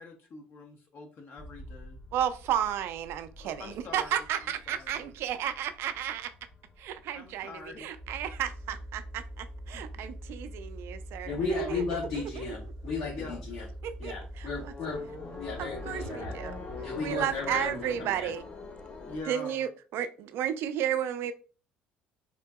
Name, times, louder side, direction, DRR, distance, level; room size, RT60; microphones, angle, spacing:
voice 1, 0.0-2.0 3.4-5.1 7.1-7.9 9.7-10.1 11.5-11.9 13.0-13.5 19.1-19.6, left 3 dB, 50° left, 0.6 m, -45 dB
sound 1, 1.4-10.3 10.6-11.3 11.6-11.7 12.1-19.2, left 2 dB, 35° left, 1.0 m, -45 dB
voice 2, 2.1-6.3 6.8-11.8 13.8-14.7 15.6-16.6 17.0-18.4 19.3-21.3, right 10 dB, 65° right, 0.4 m, -33 dB
sound 2, 7.9-14.8, right 1 dB, ahead, 0.5 m, -43 dB
voice 3, 11.2-13.7 14.0-15.0 15.3-16.3 16.8-18.3, left 4 dB, 70° left, 1.2 m, -35 dB
3.6 x 2.6 x 2.2 m
hypercardioid pair, 65°, 4 cm